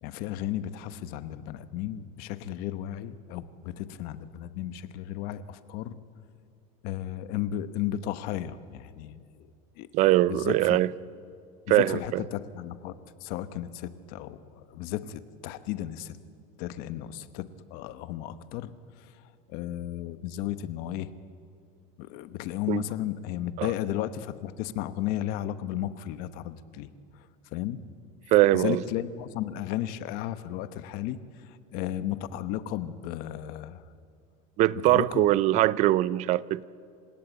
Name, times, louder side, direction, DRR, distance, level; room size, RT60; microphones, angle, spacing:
voice 1, 0.0-6.0 6.8-9.2 9.8-10.8 11.7-16.2 16.6-18.7 19.0-19.1 19.5-21.1 22.0-26.9 27.5-27.8 28.5-33.8 34.7-35.3, left 12 dB, 55° left, 1.1 m, -34 dB
voice 2, 9.9-10.9 11.7-12.2 22.7-22.8 23.6-23.7 28.3-28.8 34.6-36.6, right 15 dB, 40° right, 0.5 m, -22 dB
27.5 x 16.5 x 9.1 m
cardioid pair, 155°, 18 cm